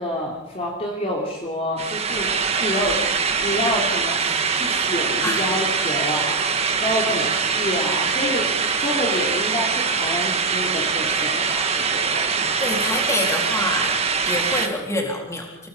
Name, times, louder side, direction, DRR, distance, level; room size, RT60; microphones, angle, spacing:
voice 1, 0.0-3.0 3.4-8.5 8.8-12.4, left 1 dB, 30° left, -2 dB, 3.2 m, -28 dB
sound 1, 1.8-14.7, right 5 dB, 30° right, 1.6 m, -23 dB
voice 2, 12.6-13.9 14.2-15.7, left 1 dB, 15° left, 0 dB, 3.9 m, -26 dB
27.5 x 18.0 x 5.5 m, 0.91 s
head